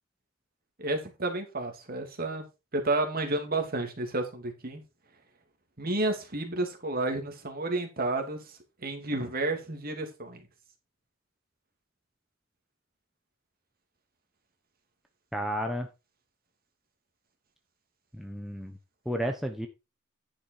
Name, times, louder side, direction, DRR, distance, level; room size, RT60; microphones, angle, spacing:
voice 1, 0.8-2.4 2.7-4.8 5.8-10.4, right 2 dB, 45° right, 4 dB, 2.6 m, -31 dB
voice 2, 15.3-15.9 18.1-18.8 19.1-19.7, equal, ahead, 3 dB, 1.0 m, -32 dB
10.5 x 6.1 x 4.4 m, 0.26 s
head